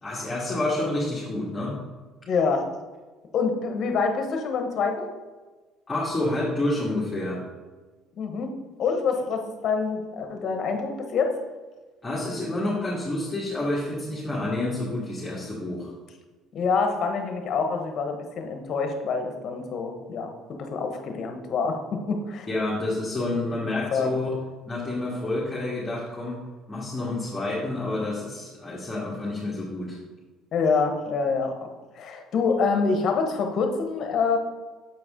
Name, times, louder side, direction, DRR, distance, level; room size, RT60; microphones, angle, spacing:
voice 1, 0.0-1.8 5.9-7.4 12.0-15.9 22.5-24.3 24.7-26.4 26.7-30.0, left 2 dB, 15° left, -8 dB, 2.0 m, -29 dB
voice 2, 2.3-2.6 3.3-5.1 8.2-8.5 8.8-11.4 16.5-22.5 23.9-24.1 30.5-31.7 32.0-34.4, left 5 dB, 55° left, 5 dB, 1.1 m, -26 dB
7.3 x 4.7 x 3.8 m, 1.3 s
supercardioid pair, 85°, 0 cm